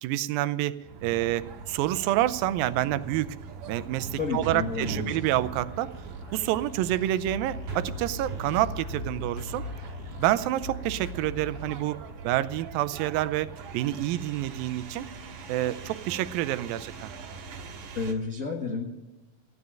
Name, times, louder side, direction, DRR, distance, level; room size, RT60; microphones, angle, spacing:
voice 1, 0.0-3.4 3.7-5.9 6.3-9.6 10.2-12.0 12.2-13.5 13.7-15.1 15.5-17.1, right 14 dB, 90° right, 15 dB, 2.4 m, -28 dB
sound 1, 0.8-18.1, right 4 dB, 70° right, 2.9 m, -41 dB
voice 2, 4.1-5.2 17.9-18.9, left 4 dB, 75° left, 1 dB, 0.7 m, -31 dB
sound 2, 4.3-11.8, left 2 dB, 40° left, 2.0 m, -41 dB
15.5 x 9.6 x 8.8 m, 1.1 s
omnidirectional pair, 4.0 m